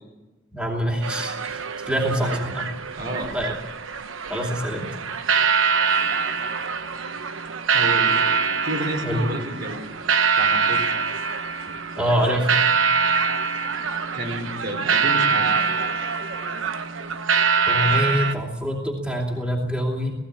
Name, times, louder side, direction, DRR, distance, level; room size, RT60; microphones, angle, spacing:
voice 1, 0.5-2.6 3.3-3.5 4.3-4.9 9.0-9.2 12.0-12.5 17.6-20.1, equal, 5° right, -1 dB, 2.8 m, -25 dB
sound 1, 1.0-18.3, right 6 dB, 90° right, 1.1 m, -24 dB
voice 2, 2.1-2.4 2.9-3.3 7.7-8.2 8.6-9.9 10.4-10.8 14.1-15.5, right 1 dB, 55° right, 2 dB, 4.6 m, -30 dB
18.0 x 17.0 x 8.7 m, 1.1 s
head